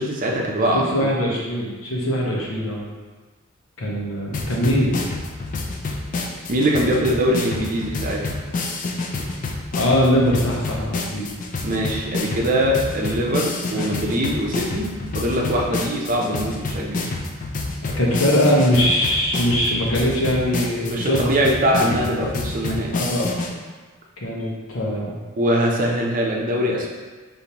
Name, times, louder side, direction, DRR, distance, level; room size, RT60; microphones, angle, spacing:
voice 1, 0.0-1.1 6.5-8.4 11.6-14.9 15.1-17.1 20.9-22.9 25.4-26.9, equal, 40° right, -2 dB, 0.6 m, -22 dB
voice 2, 0.8-2.8 3.8-5.0 9.7-11.3 13.7-13.9 17.8-21.3 21.7-22.0 22.9-23.3 24.2-25.2, equal, 85° left, -3 dB, 0.9 m, -21 dB
sound 1, 4.3-23.5, left 3 dB, 40° left, 0.4 m, -28 dB
5.1 x 2.7 x 2.9 m, 1.4 s
head